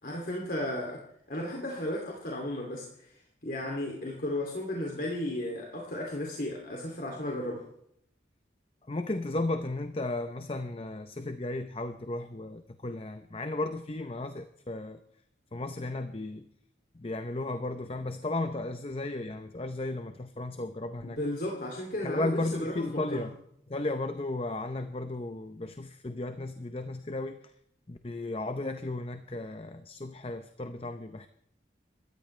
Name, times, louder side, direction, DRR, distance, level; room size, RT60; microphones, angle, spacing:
voice 1, 0.0-1.0 1.3-3.1 3.4-7.6 21.0-23.2, left 1 dB, 50° left, -1 dB, 2.6 m, -34 dB
voice 2, 8.9-15.0 15.5-16.5 16.9-21.2 22.0-23.3 23.7-27.5 27.9-31.3, left 2 dB, 30° left, 8 dB, 0.7 m, -34 dB
27.0 x 14.0 x 3.3 m, 0.75 s
head